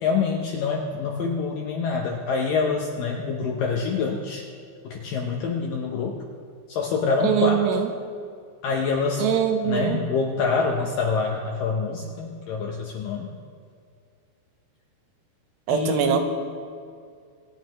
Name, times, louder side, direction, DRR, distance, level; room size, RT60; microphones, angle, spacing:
voice 1, 0.0-4.4 4.8-6.2 6.7-7.8 8.6-13.3 15.7-16.2, left 5 dB, 75° left, 0 dB, 2.0 m, -26 dB
voice 2, 7.2-7.9 9.2-10.0 15.7-16.2, right 8 dB, 80° right, 6 dB, 3.0 m, -22 dB
25.0 x 10.5 x 3.1 m, 2.2 s
omnidirectional pair, 5.1 m